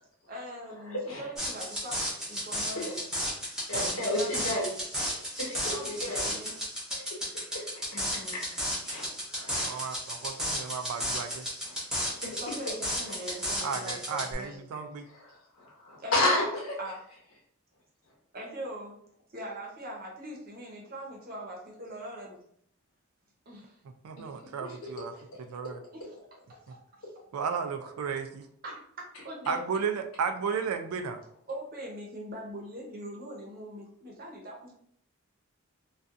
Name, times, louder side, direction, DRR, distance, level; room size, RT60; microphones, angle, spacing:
voice 1, 0.3-3.0 3.7-4.5 5.7-6.6 7.9-8.4 12.4-14.6 16.0-16.4 16.8-17.0 18.3-18.9 19.3-22.4 23.5-23.8 25.1-25.2 25.9-26.2 26.5-26.8 28.6-29.6 31.5-34.7, equal, 45° right, -2 dB, 0.7 m, -41 dB
voice 2, 0.9-1.2 2.8-3.0 3.7-4.7 5.4-6.3 7.0-8.0 8.3-8.4 8.8-9.8 10.3-10.5 11.6-11.8 15.1-15.4 16.1-16.8 24.2-24.3 24.6-25.1, left 1 dB, 75° left, -2 dB, 0.9 m, -32 dB
sound 1, 1.4-14.3, equal, 5° right, 0.6 m, -33 dB
voice 3, 9.6-11.5 13.6-15.0 24.0-25.1 25.5-25.8 27.3-28.4 29.5-31.2, right 6 dB, 85° right, 7 dB, 0.3 m, -33 dB
2.4 x 2.3 x 2.5 m, 0.68 s
head